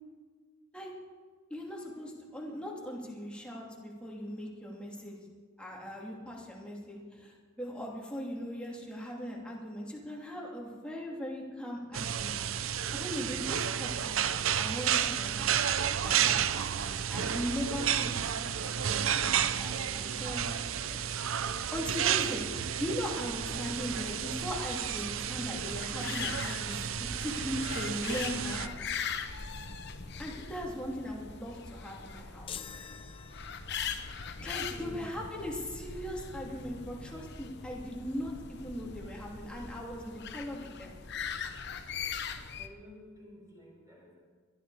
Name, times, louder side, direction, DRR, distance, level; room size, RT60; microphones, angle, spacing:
voice 1, 1.5-5.2 5.6-12.4 12.7-20.6 20.9-21.0 21.7-22.5 22.8-28.8 30.2-32.5 34.4-40.9, equal, 5° left, -2 dB, 2.5 m, -39 dB
sound 1, 11.9-28.7, right 9 dB, 75° right, 0.6 m, -31 dB
sound 2, 23.2-42.7, left 6 dB, 55° left, 1.0 m, -41 dB
sound 3, 32.5-34.0, left 7 dB, 25° left, 0.5 m, -45 dB
voice 2, 42.6-44.1, equal, 15° right, -4 dB, 5.9 m, -55 dB
21.5 x 12.5 x 4.8 m, 1.5 s
head